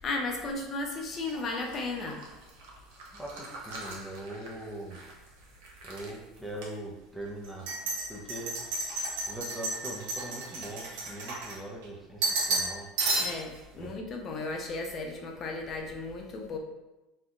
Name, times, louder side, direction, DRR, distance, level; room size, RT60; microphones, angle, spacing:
voice 1, 0.0-2.2 13.2-16.6, left 3 dB, 40° left, 2 dB, 0.7 m, -35 dB
sound 1, 1.2-5.1 5.4-6.1 6.6-6.7 7.4-11.9 12.2-12.7 13.0-13.6, right 2 dB, 70° right, 0.8 m, -33 dB
voice 2, 3.1-5.0 5.8-7.7 8.1-8.6 9.3-12.9 13.7-13.9, right 1 dB, 5° left, -3 dB, 0.8 m, -41 dB
4.3 x 2.7 x 2.5 m, 1.0 s
hypercardioid pair, 80°, 0 cm